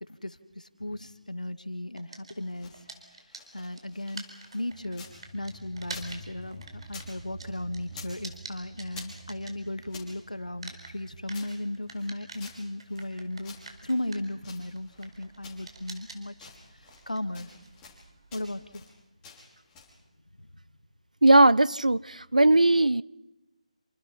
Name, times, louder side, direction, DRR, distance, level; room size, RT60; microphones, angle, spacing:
voice 1, 0.0-2.8 3.5-4.3 4.5-5.1 5.3-13.6 13.8-16.5 17.1-17.5 18.3-18.8, left 1 dB, 80° left, 2.2 m, -36 dB
sound 1, 2.0-10.1 10.4-18.7, right 3 dB, 45° right, 4.7 m, -47 dB
sound 2, 2.3-5.2 5.5-7.1 7.4-8.2 8.5-10.1 10.6-13.1 13.4-15.1 15.4-16.0 16.3-17.1 17.3-18.0 18.3-18.9 19.2-20.0, left 5 dB, 15° left, 5.9 m, -50 dB
sound 3, 4.7-15.8, right 2 dB, 10° right, 3.2 m, -50 dB
voice 2, 21.2-22.0 22.3-23.0, right 2 dB, 75° right, 0.8 m, -18 dB
28.5 x 26.0 x 5.7 m
figure-of-eight pair, 155°, 4 cm